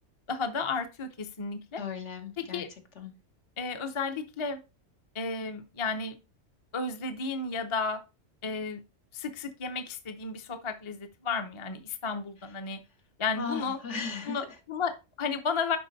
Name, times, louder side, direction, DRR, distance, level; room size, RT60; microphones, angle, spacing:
voice 1, 0.3-1.8 2.4-2.7 3.6-4.6 5.1-6.2 6.7-8.0 8.4-8.8 9.1-12.8 13.2-13.8 14.3-15.8, left 4 dB, 30° left, 8 dB, 0.7 m, -33 dB
voice 2, 1.8-2.6 3.0-3.1 13.4-14.4, left 5 dB, 65° left, 5 dB, 1.6 m, -36 dB
10.5 x 4.1 x 4.0 m, 0.29 s
omnidirectional pair, 1.3 m